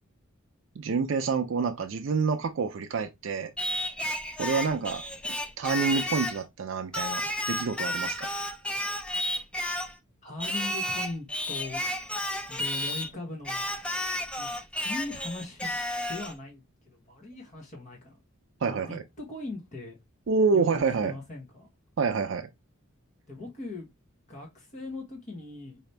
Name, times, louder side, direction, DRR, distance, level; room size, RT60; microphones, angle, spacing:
voice 1, 0.8-3.5 4.4-5.0 5.6-8.3 18.6-19.0 20.3-21.1 22.0-22.5, right 5 dB, 65° right, 0.4 m, -27 dB
Singing, 3.6-6.4 6.9-10.0 10.4-13.1 13.4-16.3, left 1 dB, 5° left, 0.4 m, -32 dB
voice 2, 10.2-11.8 12.5-13.8 14.4-14.6 14.8-15.8 16.1-18.2 18.6-20.0 20.5-20.7 21.0-21.7 23.3-23.9 24.3-25.8, left 2 dB, 35° left, 1.2 m, -40 dB
4.9 x 2.8 x 3.3 m
head